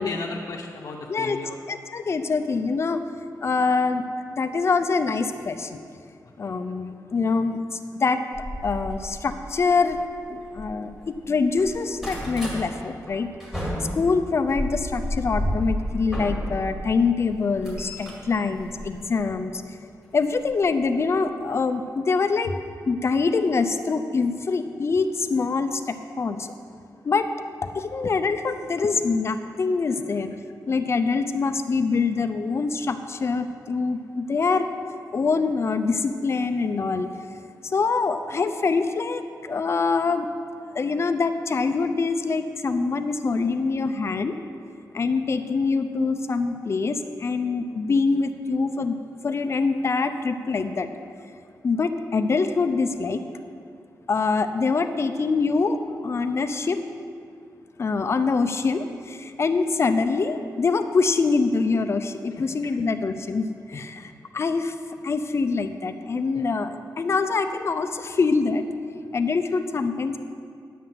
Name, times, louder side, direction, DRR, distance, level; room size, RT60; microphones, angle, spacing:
voice 1, 0.0-1.6 6.2-6.6 62.3-62.7 63.7-63.8 66.3-66.5 69.5-69.6, left 4 dB, 65° left, -3 dB, 0.8 m, -35 dB
voice 2, 1.7-3.0 3.4-4.0 4.3-5.8 6.4-8.2 8.6-10.0 10.3-13.3 13.9-19.8 20.1-22.5 22.9-26.5 27.0-27.3 27.6-30.3 30.7-34.7 35.1-37.1 37.6-40.3 40.7-44.3 44.9-48.9 49.2-50.9 51.6-53.2 54.1-56.8 57.8-64.8 65.0-68.6 69.1-70.2, left 4 dB, 40° left, 8 dB, 0.5 m, -24 dB
sound 1, 8.3-11.1 11.4-12.6 13.1-16.8 17.2-19.4 20.5-20.7 21.1-21.2 21.5-21.6, equal, 5° right, 2.2 m, -32 dB
10.0 x 5.7 x 7.8 m, 2.3 s
wide cardioid pair, 165°, 7 cm